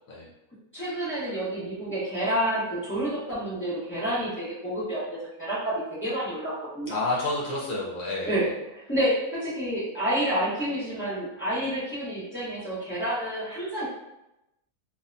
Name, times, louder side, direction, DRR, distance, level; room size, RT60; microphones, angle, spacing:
voice 1, 0.7-6.9 8.2-8.4 8.7-13.8, right 1 dB, 20° left, -12 dB, 0.3 m, -29 dB
voice 2, 6.9-8.5, left 2 dB, 70° left, -4 dB, 0.9 m, -29 dB
2.7 x 2.1 x 2.5 m, 0.90 s
omnidirectional pair, 1.6 m